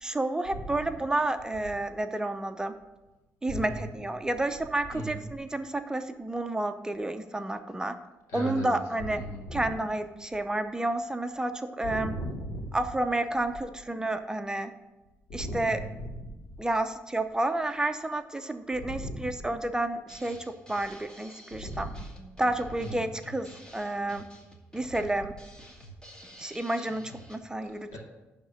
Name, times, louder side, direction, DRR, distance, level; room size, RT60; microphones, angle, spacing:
voice 1, 0.0-2.7 3.4-8.0 8.3-9.2 9.5-12.1 12.7-14.7 15.3-15.8 16.6-21.9 22.4-24.2 24.7-25.3 26.4-28.0, right 2 dB, 15° right, 8 dB, 0.6 m, -30 dB
voice 2, 3.5-3.9 4.9-5.2 8.3-9.7 11.8-12.7 15.3-16.2 18.8-19.3 21.5-22.0 22.8-23.0 27.9-28.0, equal, 85° left, -1 dB, 2.3 m, -37 dB
Drum kit, 20.1-27.4, equal, 15° left, 1.7 m, -50 dB
11.0 x 3.6 x 6.3 m, 1.0 s
cardioid pair, 70°, 5 cm